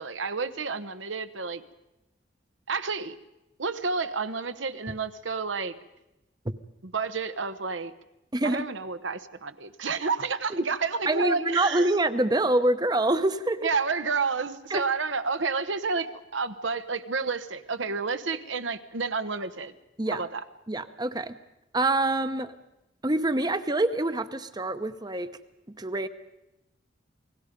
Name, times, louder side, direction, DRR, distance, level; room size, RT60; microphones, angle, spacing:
voice 1, 0.0-1.6 2.7-3.1 3.6-5.7 6.8-7.9 8.4-11.9 13.6-19.7 20.1-20.4, right 4 dB, 80° right, 10 dB, 1.1 m, -30 dB
voice 2, 8.3-8.7 10.5-10.6 11.1-13.7 14.7-14.8 20.0-20.2 20.7-21.3 21.7-22.5 23.0-25.3 25.7-26.1, right 2 dB, 20° right, 11 dB, 0.8 m, -26 dB
28.5 x 19.5 x 5.2 m, 0.93 s
head